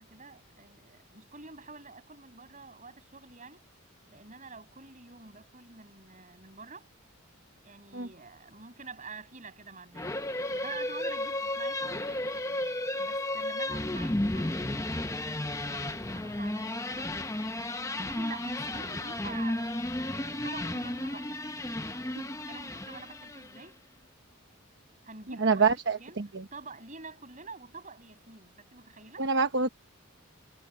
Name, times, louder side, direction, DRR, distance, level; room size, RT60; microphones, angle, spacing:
voice 1, 0.0-3.6 4.1-6.9 7.6-10.2 10.5-12.4 13.0-17.1 17.9-21.4 22.2-23.8 25.0-26.2 26.5-29.3, right 4 dB, 35° right, 7.1 m, -47 dB
sound 1, 10.0-23.6, left 1 dB, 15° left, 0.9 m, -33 dB
voice 2, 25.4-26.2 29.2-29.7, right 5 dB, 55° right, 1.1 m, -25 dB
head